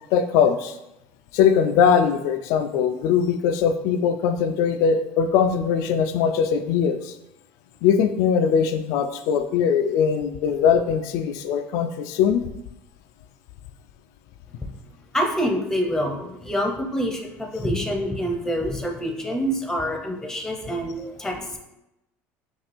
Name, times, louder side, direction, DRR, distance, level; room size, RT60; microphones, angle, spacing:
voice 1, 0.1-0.8 1.3-7.2 7.8-12.5, left 7 dB, 70° left, 7 dB, 0.3 m, -21 dB
voice 2, 15.1-21.6, equal, 5° left, 2 dB, 0.8 m, -26 dB
5.7 x 2.4 x 3.4 m, 0.90 s
supercardioid pair, 105°, 6 cm